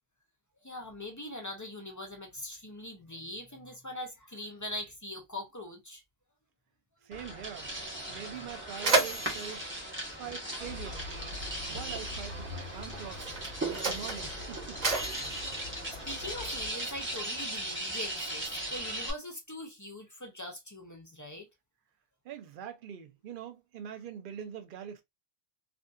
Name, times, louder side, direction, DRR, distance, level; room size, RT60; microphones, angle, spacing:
voice 1, 0.6-6.0 15.1-15.3 16.0-21.5, left 1 dB, 30° left, 0.3 m, -42 dB
voice 2, 7.0-7.7 8.1-9.7 10.1-11.4 11.7-13.2 13.7-14.8 22.2-25.0, right 9 dB, 60° right, 0.7 m, -43 dB
sound 1, 7.1-19.1, right 1 dB, 15° right, 0.8 m, -38 dB
Mechanisms, 7.9-8.0 8.3-11.1 12.1-12.2 13.0-16.6, right 3 dB, 45° right, 1.0 m, -33 dB
sound 2, 10.6-16.7, left 2 dB, 80° right, 1.1 m, -44 dB
2.6 x 2.4 x 2.2 m
omnidirectional pair, 1.1 m